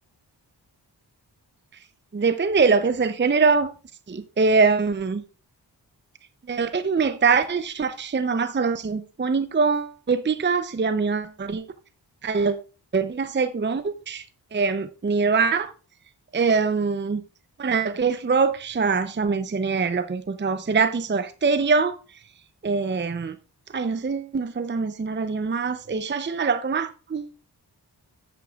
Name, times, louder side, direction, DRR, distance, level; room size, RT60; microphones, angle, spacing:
voice 1, 2.1-3.7 4.1-5.2 6.5-11.7 12.2-12.6 12.9-14.3 14.5-15.7 16.3-17.2 17.6-22.0 22.6-23.4 23.7-27.3, right 4 dB, 25° right, 0.6 m, -23 dB
13.0 x 8.2 x 2.4 m
cardioid pair, 60°, 41 cm